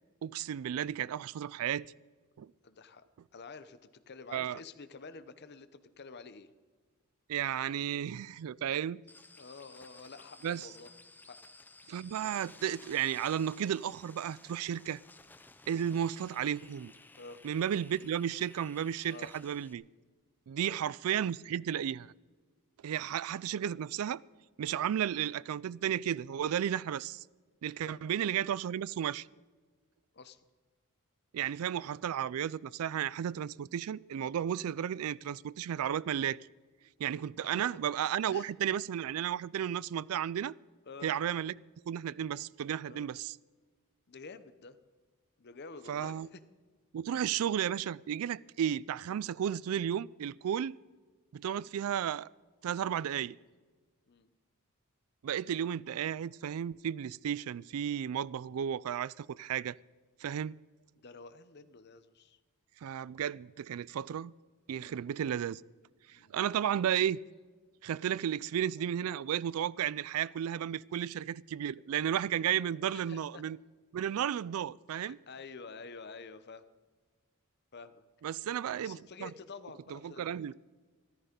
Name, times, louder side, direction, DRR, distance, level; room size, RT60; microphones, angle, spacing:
voice 1, 0.2-1.9 2.4-2.5 4.3-4.6 7.3-9.0 10.4-10.7 11.9-15.0 15.7-16.9 17.4-19.8 20.5-22.1 22.8-24.2 24.6-27.2 27.6-29.3 31.3-36.4 37.0-40.6 41.0-41.6 41.9-43.4 45.9-46.3 46.9-50.8 51.3-52.3 52.6-53.4 55.2-59.8 60.2-60.6 62.8-64.3 64.7-65.6 66.1-67.2 67.8-73.6 73.9-75.2 78.2-79.3 79.9-80.5, right 9 dB, 70° right, 0.3 m, -33 dB
voice 2, 2.6-3.0 3.3-6.5 9.4-10.9 11.3-11.4 17.2-17.4 19.1-19.3 20.6-20.8 27.8-28.0 30.1-30.4 37.4-37.6 38.3-38.5 40.9-41.1 42.9-43.1 44.1-44.8 45.4-46.4 54.1-54.3 61.0-62.4 64.8-65.1 66.1-66.4 72.9-73.4 74.9-76.7 77.7-78.0 78.8-80.5, left 4 dB, 50° left, 0.8 m, -49 dB
sound 1, 9.1-19.7, left 3 dB, 10° left, 0.5 m, -56 dB
14.0 x 13.5 x 5.2 m
head